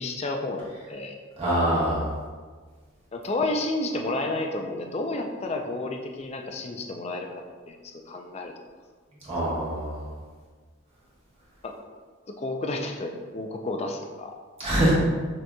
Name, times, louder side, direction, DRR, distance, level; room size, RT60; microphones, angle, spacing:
voice 1, 0.0-1.2 3.1-7.3 7.7-8.5 11.6-11.7 12.4-14.3, left 2 dB, 30° left, 2 dB, 0.4 m, -31 dB
voice 2, 1.4-2.1 9.3-10.1 14.6-14.9, right 1 dB, 30° right, -9 dB, 1.2 m, -24 dB
6.2 x 2.8 x 2.3 m, 1.5 s
head